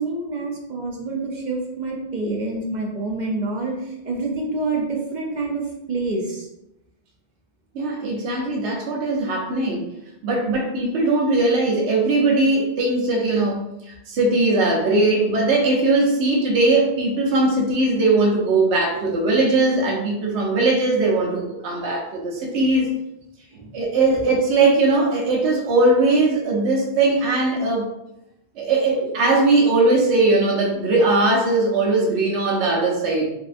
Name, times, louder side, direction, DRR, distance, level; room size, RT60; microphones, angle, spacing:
voice 1, 0.0-5.6 5.9-6.5 23.5-23.7, right 3 dB, 55° right, -1 dB, 0.6 m, -27 dB
voice 2, 7.7-9.9 10.2-22.9 23.7-27.9 28.6-33.3, right 2 dB, 80° right, -1 dB, 1.0 m, -20 dB
3.1 x 2.7 x 2.5 m, 0.87 s
omnidirectional pair, 1.1 m